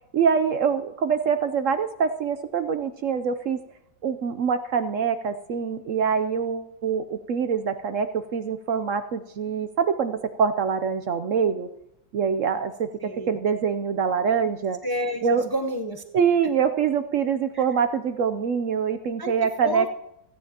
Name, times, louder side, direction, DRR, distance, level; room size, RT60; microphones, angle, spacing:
voice 1, 0.1-3.6 4.0-11.7 12.1-14.8 15.2-15.4 16.1-19.9, right 6 dB, 70° right, 10 dB, 0.7 m, -24 dB
voice 2, 13.0-13.3 14.8-16.0 17.5-17.7 19.2-19.3 19.6-19.9, equal, 35° left, 5 dB, 0.3 m, -29 dB
28.5 x 9.6 x 2.9 m, 0.84 s
omnidirectional pair, 2.0 m